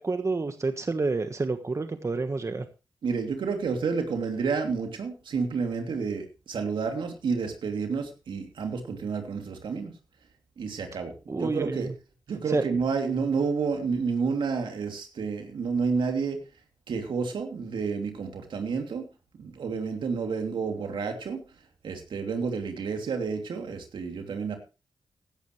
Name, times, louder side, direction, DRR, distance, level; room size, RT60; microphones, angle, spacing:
voice 1, 0.0-2.6 11.3-11.9 12.5-12.6, right 3 dB, 35° right, 8 dB, 1.4 m, -29 dB
voice 2, 3.0-10.0 10.6-11.9 12.3-16.4 16.9-19.1 19.4-21.4 21.8-24.6, right 5 dB, 80° right, 4 dB, 3.0 m, -30 dB
16.0 x 11.5 x 3.2 m, 0.30 s
cardioid pair, 55°, 8 cm